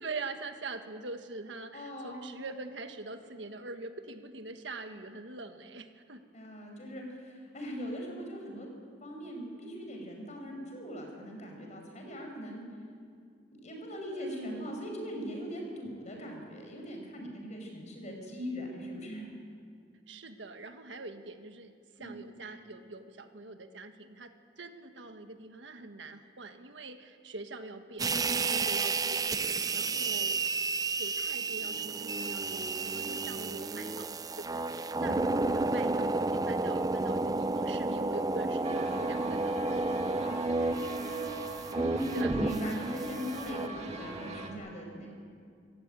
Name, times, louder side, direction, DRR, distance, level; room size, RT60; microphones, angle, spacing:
voice 1, 0.0-6.2 14.1-14.7 20.1-30.4 31.0-39.6 40.2-41.0 42.1-42.3, right 3 dB, 75° right, 7 dB, 1.5 m, -44 dB
voice 2, 1.7-2.2 6.3-8.7 9.0-12.6 13.6-19.3 22.0-22.2 34.9-35.2 41.7-45.1, equal, 40° left, 2 dB, 5.7 m, -40 dB
sound 1, 28.0-43.7, right 3 dB, 20° right, 0.5 m, -31 dB
sound 2, 38.6-44.5, right 3 dB, 35° right, 2.2 m, -40 dB
26.5 x 15.5 x 9.0 m, 2.3 s
head